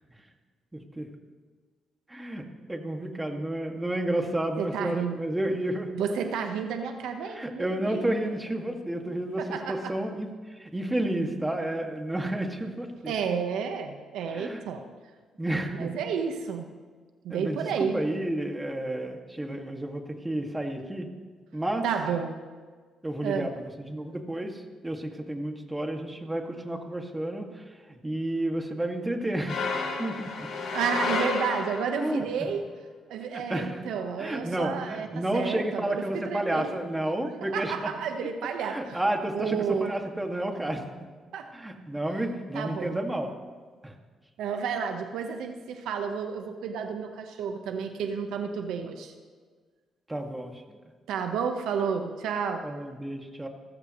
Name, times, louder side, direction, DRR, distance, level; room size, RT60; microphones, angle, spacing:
voice 1, 2.1-2.4 2.7-5.9 7.2-13.1 14.3-14.6 15.4-15.9 17.3-21.1 21.5-21.8 23.0-23.5 23.9-27.6 28.0-29.7 30.0-30.5 32.0-32.3 33.3-33.8 34.2-37.9 38.7-40.8 41.5-43.3 43.8-43.9 50.1-50.8 52.6-53.5, right 1 dB, 15° right, 3 dB, 2.2 m, -31 dB
voice 2, 4.6-5.2 5.9-8.2 9.4-10.0 13.1-14.8 15.7-16.6 17.2-18.0 21.8-22.3 23.2-23.5 30.7-32.7 33.1-36.7 37.4-39.0 39.3-40.0 41.3-41.5 42.5-42.9 44.4-49.1 51.1-52.7, right 6 dB, 85° right, 5 dB, 1.2 m, -31 dB
sound 1, 29.5-32.1, left 3 dB, 65° left, 6.6 m, -31 dB
29.5 x 14.0 x 3.2 m, 1.5 s
cardioid pair, 90°, 0 cm